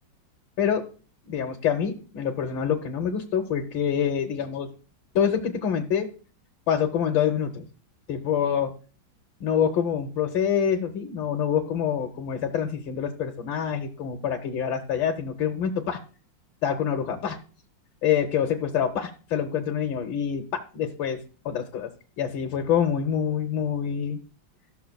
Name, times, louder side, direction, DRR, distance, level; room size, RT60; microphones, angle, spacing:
voice 1, 1.2-4.7 5.1-6.1 6.7-7.6 8.1-8.7 9.4-16.0 16.6-17.4 18.0-21.2 21.4-21.9 22.2-24.2, left 8 dB, 90° left, 3 dB, 1.6 m, -26 dB
14.0 x 6.4 x 2.2 m, 0.38 s
omnidirectional pair, 2.1 m